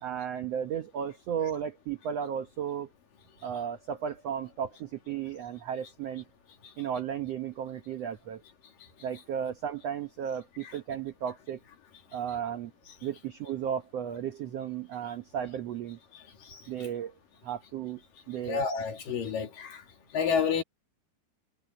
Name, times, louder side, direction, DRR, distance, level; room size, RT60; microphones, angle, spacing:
voice 1, 0.0-2.9 3.4-6.2 6.8-8.4 9.0-11.6 12.1-12.7 13.0-16.0 16.7-17.1 17.4-18.0 18.3-18.6, right 8 dB, 75° right, 1.5 m, -34 dB
voice 2, 18.4-19.8 20.1-20.6, left 6 dB, 65° left, 4.1 m, -29 dB
omnidirectional pair, 4.3 m